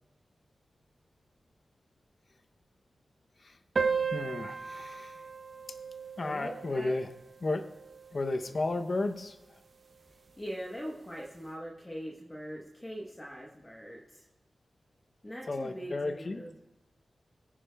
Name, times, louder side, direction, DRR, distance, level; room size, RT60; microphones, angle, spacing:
sound 1, 3.8-8.7, right 5 dB, 50° right, 0.6 m, -36 dB
voice 1, 4.1-5.2 6.2-7.1 7.4-7.6 8.1-9.4 15.5-16.4, left 2 dB, 45° left, 7 dB, 0.6 m, -33 dB
voice 2, 6.2-6.9 10.4-14.2 15.2-16.5, equal, 20° left, -2 dB, 1.0 m, -42 dB
21.5 x 9.9 x 2.2 m, 0.94 s
wide cardioid pair, 125°, 0 cm